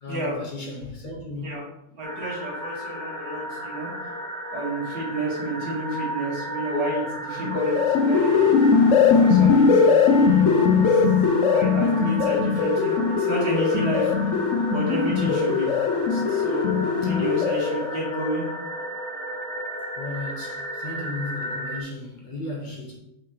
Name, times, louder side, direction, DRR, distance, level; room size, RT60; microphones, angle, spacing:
voice 1, 0.0-1.6 15.2-15.7 19.9-23.0, left 2 dB, 30° left, 1.4 m, -35 dB
sound 1, 2.0-21.8, equal, 5° left, 0.4 m, -34 dB
voice 2, 2.0-4.1 4.5-8.6 9.2-11.0 11.3-14.4 14.7-18.5, right 1 dB, 70° right, 2.8 m, -30 dB
sound 2, 7.4-17.9, left 5 dB, 65° left, 0.7 m, -20 dB
6.2 x 5.7 x 3.2 m
omnidirectional pair, 1.9 m